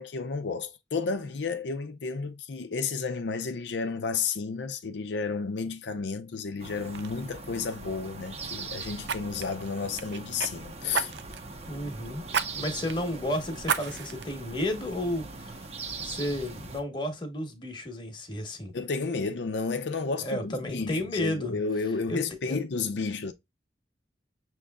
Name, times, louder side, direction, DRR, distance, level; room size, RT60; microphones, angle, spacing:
voice 1, 0.0-11.1 18.7-23.3, left 4 dB, 80° left, 0.5 m, -32 dB
Fire, 6.4-6.6 6.9-7.1 9.0-10.5 10.9-11.5 12.3-12.5 12.9-13.0 13.6-14.2 14.8-14.9, right 6 dB, 75° right, 0.5 m, -31 dB
sound 1, 6.6-16.8, right 3 dB, 35° right, 0.8 m, -41 dB
voice 2, 11.7-12.2 12.5-15.6 16.0-18.7 20.2-21.6 22.1-22.6, left 1 dB, 25° left, 1.1 m, -32 dB
6.4 x 3.1 x 2.3 m
head